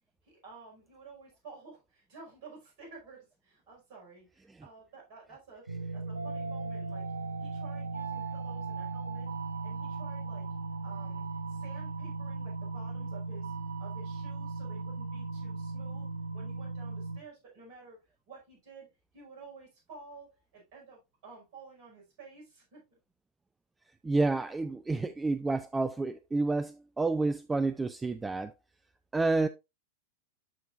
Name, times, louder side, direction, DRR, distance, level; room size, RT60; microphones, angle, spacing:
voice 1, 0.2-5.7 5.9-7.0 7.4-9.3 9.6-10.5 10.8-13.5 13.8-18.0 18.3-18.9 19.1-23.0, right 4 dB, 45° right, 5.0 m, -52 dB
sound 1, 5.7-17.2, right 3 dB, 75° right, 0.8 m, -37 dB
voice 2, 24.0-28.5 29.1-29.5, right 3 dB, 10° right, 0.4 m, -29 dB
12.0 x 4.3 x 2.5 m
figure-of-eight pair, 90°, 0 cm